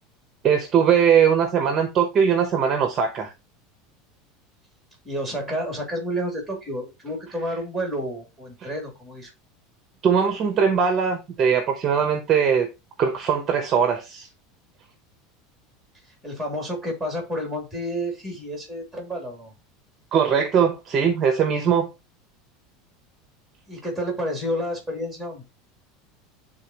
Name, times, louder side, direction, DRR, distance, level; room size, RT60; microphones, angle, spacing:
voice 1, 0.4-3.3 10.0-12.7 13.0-14.3 20.1-21.9, right 7 dB, 25° right, 0.9 m, -20 dB
voice 2, 5.0-9.3 16.2-19.5 23.7-25.4, equal, ahead, 2.7 m, -30 dB
9.7 x 3.8 x 3.0 m
supercardioid pair, 160°, 0 cm